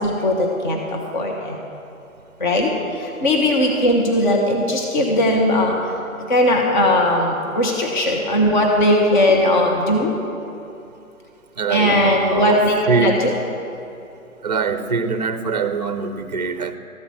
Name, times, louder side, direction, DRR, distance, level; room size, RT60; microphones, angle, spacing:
voice 1, 0.0-1.6 2.4-5.9 6.3-10.1 11.7-13.3, left 1 dB, 35° left, 0 dB, 1.3 m, -18 dB
voice 2, 11.6-12.6 12.9-13.4 14.4-16.8, right 5 dB, 30° right, 10 dB, 0.6 m, -23 dB
14.0 x 8.2 x 6.2 m, 2.8 s
hypercardioid pair, 160°, 42 cm